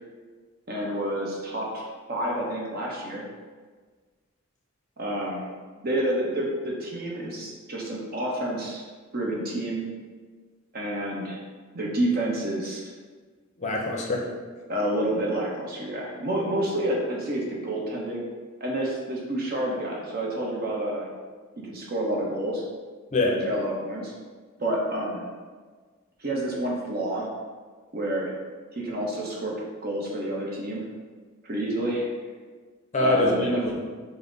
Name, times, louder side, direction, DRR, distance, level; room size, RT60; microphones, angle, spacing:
voice 1, 0.7-3.2 5.0-5.4 5.8-8.8 9.1-9.9 10.7-11.4 11.7-12.8 14.7-18.2 18.6-21.1 21.6-22.6 23.2-24.1 24.6-25.3 26.2-27.3 27.9-28.3 28.7-30.9 31.4-32.1 33.0-33.6, right 1 dB, 50° right, -2 dB, 0.8 m, -29 dB
voice 2, 13.6-14.3 23.1-23.4 32.9-33.9, left 2 dB, 35° left, 0 dB, 0.5 m, -24 dB
5.6 x 2.1 x 3.8 m, 1.5 s
head